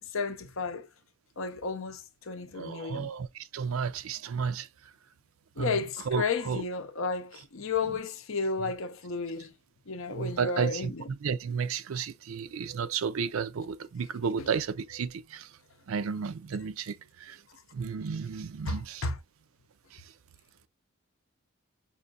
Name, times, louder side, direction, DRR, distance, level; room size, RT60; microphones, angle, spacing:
voice 1, 0.1-0.9 1.4-3.1 5.6-9.5 9.9-11.1 14.4-14.5 18.7-19.2, left 4 dB, 70° left, 0.7 m, -33 dB
voice 2, 2.5-4.9 5.6-6.6 7.9-8.0 8.6-8.7 10.1-15.5 15.9-17.4 17.7-19.1 19.9-20.1, right 6 dB, 75° right, 0.4 m, -33 dB
5.4 x 2.6 x 2.4 m
head